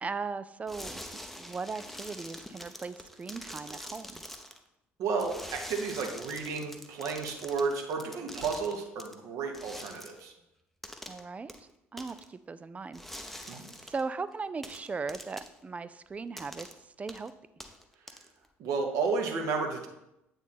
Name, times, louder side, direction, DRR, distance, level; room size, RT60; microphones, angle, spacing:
voice 1, 0.0-1.0 1.4-4.2 11.1-16.7 17.0-17.3, right 4 dB, 20° right, 14 dB, 0.3 m, -38 dB
sound 1, 0.7-4.6 5.2-9.1 9.5-10.2 10.8-11.2 11.5-11.6 12.0-12.3 12.9-14.0 14.6-15.6 16.4-16.7 17.1-17.3 17.6-18.5, equal, ahead, 0.7 m, -45 dB
voice 2, 5.0-10.3 13.5-13.7 18.6-19.9, right 4 dB, 55° right, 3 dB, 1.1 m, -32 dB
8.2 x 3.4 x 4.3 m, 0.88 s
figure-of-eight pair, 55°, 6 cm